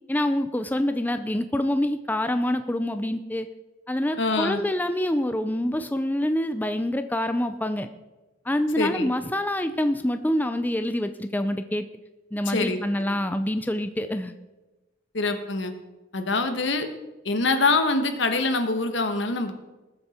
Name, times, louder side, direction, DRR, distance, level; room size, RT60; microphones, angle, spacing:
voice 1, 0.1-3.5 3.9-7.9 8.4-11.9 12.3-14.3, left 1 dB, 10° left, 9 dB, 0.5 m, -26 dB
voice 2, 4.2-4.6 8.8-9.1 12.4-12.8 13.1-13.2 15.1-15.7 16.1-16.9 17.2-19.5, left 3 dB, 70° left, 7 dB, 1.5 m, -24 dB
19.5 x 7.9 x 4.4 m, 1.1 s
head